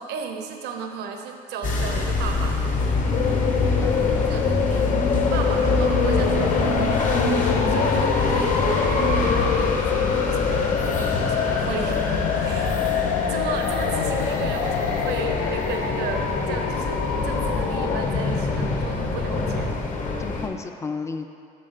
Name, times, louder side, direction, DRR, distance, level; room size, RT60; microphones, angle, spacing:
voice 1, 0.0-2.7 4.1-7.0 7.7-10.7 11.2-12.0 12.4-12.8 13.3-19.7, right 6 dB, 80° right, 4 dB, 0.7 m, -34 dB
sound 1, 1.6-20.5, left 3 dB, 50° left, 0.9 m, -25 dB
sound 2, 3.1-18.1, left 8 dB, 75° left, 0.4 m, -26 dB
voice 2, 3.8-4.7 20.2-21.3, left 4 dB, 15° left, 7 dB, 0.4 m, -33 dB
7.7 x 3.2 x 5.7 m, 2.4 s
cardioid pair, 110°, 17 cm